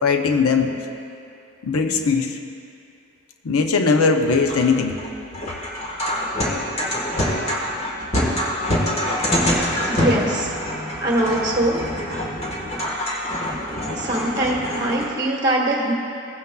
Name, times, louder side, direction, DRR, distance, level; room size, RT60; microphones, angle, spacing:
voice 1, 0.0-0.7 1.6-2.4 3.4-5.0, left 4 dB, 75° left, 5 dB, 0.6 m, -19 dB
sound 1, 4.5-15.0, equal, 30° left, 1.3 m, -25 dB
voice 2, 9.9-10.5 11.0-11.8 13.9-15.9, right 1 dB, 20° right, -3 dB, 1.4 m, -22 dB
17.0 x 9.4 x 2.3 m, 2.6 s
head